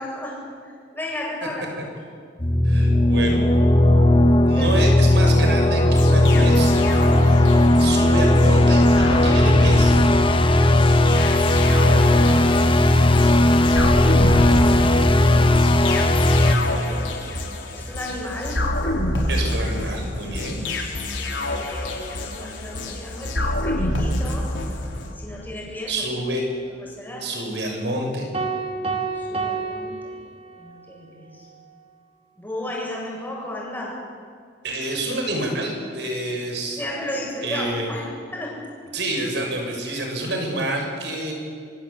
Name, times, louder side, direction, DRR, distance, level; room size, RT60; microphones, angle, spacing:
voice 1, 0.0-1.7 4.6-4.9 16.6-17.1 17.7-18.6 21.6-24.5 25.2-26.0 26.8-27.3 29.1-30.2 30.6-31.5 32.4-34.0 36.8-38.6, left 1 dB, 10° left, -3 dB, 7.9 m, -34 dB
sound 1, 2.4-16.6, left 1 dB, 30° left, 1.4 m, -16 dB
voice 2, 2.6-3.4 4.5-6.7 7.8-10.0 19.3-20.6 25.9-26.5 27.2-28.3 34.6-36.8 37.4-38.0 38.9-41.3, right 1 dB, 65° right, 2 dB, 6.9 m, -27 dB
sound 2, 5.9-25.1, left 1 dB, 80° left, 4.2 m, -27 dB
sound 3, 28.3-30.8, right 4 dB, 30° right, 3.0 m, -29 dB
25.5 x 23.5 x 8.6 m, 2.2 s
head